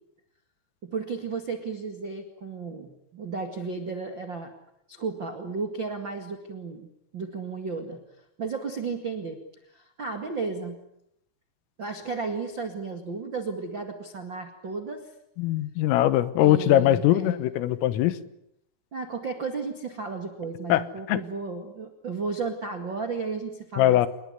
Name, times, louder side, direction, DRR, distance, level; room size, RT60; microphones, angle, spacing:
voice 1, 0.8-4.5 4.9-6.9 7.1-8.0 8.4-9.4 9.7-10.8 11.8-15.1 16.4-17.4 18.9-24.1, right 4 dB, 60° right, 5 dB, 1.2 m, -33 dB
voice 2, 15.4-18.2 20.7-20.8 21.1-21.2 23.8-24.1, left 13 dB, 85° left, 14 dB, 3.8 m, -21 dB
27.0 x 21.0 x 9.7 m, 0.81 s
omnidirectional pair, 5.8 m